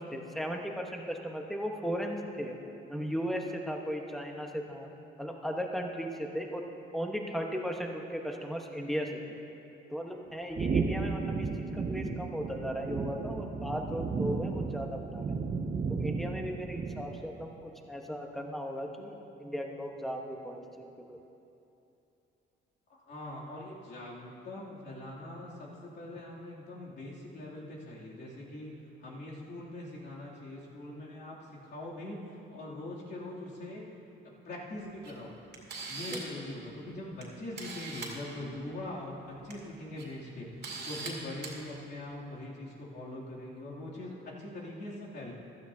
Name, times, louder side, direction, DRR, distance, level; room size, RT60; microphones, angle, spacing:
voice 1, 0.0-2.6 2.9-4.9 5.2-6.6 6.9-9.4 9.9-15.4 16.0-21.2 36.1-36.2, equal, ahead, 2 dB, 1.2 m, -36 dB
sound 1, 10.5-17.3, right 4 dB, 35° right, 0.7 m, -34 dB
voice 2, 23.1-28.7 29.0-31.4 31.6-33.8 34.4-35.3 35.9-45.3, left 1 dB, 60° left, -6 dB, 2.9 m, -42 dB
Camera, 35.0-35.1 35.5-36.4 37.2-37.3 37.6-38.1 39.3-39.5 40.0-40.1 40.6-41.1 41.4-41.5, right 4 dB, 55° right, 2.4 m, -40 dB
15.5 x 12.5 x 2.8 m, 2.8 s
cardioid pair, 90°, 20 cm